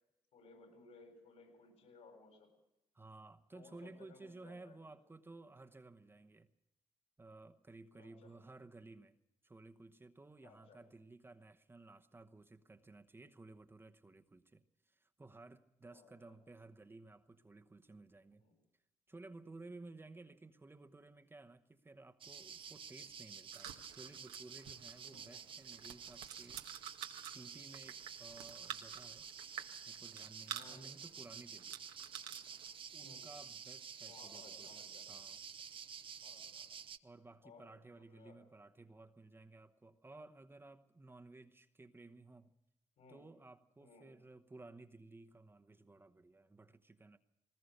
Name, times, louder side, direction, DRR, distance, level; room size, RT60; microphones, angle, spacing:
voice 1, 0.3-2.5 3.5-4.8 7.9-8.3 10.4-10.8 15.9-16.4 18.4-18.5 25.1-25.4 30.6-30.8 33.0-33.4 34.0-35.1 36.2-36.6 37.4-37.7 38.1-38.4 43.0-43.2 43.8-44.1, left 4 dB, 70° left, 7.8 m, -61 dB
voice 2, 2.9-6.5 7.2-9.2 9.4-18.4 19.1-26.6 27.2-29.3 29.9-31.8 32.9-34.8 35.1-35.4 37.0-42.5 43.1-47.2, right 2 dB, 20° right, 1.0 m, -56 dB
sound 1, 22.2-37.0, right 7 dB, 45° right, 0.8 m, -50 dB
sound 2, 23.5-32.8, right 10 dB, 90° right, 1.4 m, -51 dB
20.0 x 19.5 x 6.7 m
supercardioid pair, 70°, 12 cm